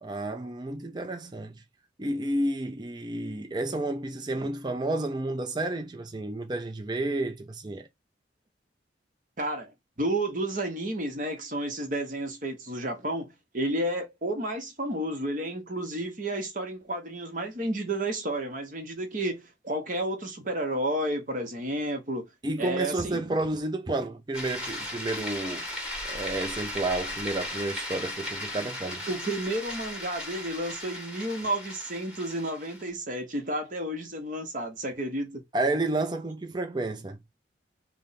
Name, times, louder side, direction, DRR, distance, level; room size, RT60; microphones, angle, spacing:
voice 1, 0.0-1.6 2.0-7.9 22.4-25.6 26.0-29.0 35.5-37.2, right 2 dB, 25° right, 0.4 m, -31 dB
voice 2, 9.4-22.3 22.6-23.2 28.8-35.4, right 1 dB, 45° right, 1.0 m, -31 dB
sound 1, 24.3-32.9, left 1 dB, 5° right, 1.3 m, -37 dB
3.4 x 2.1 x 4.0 m
head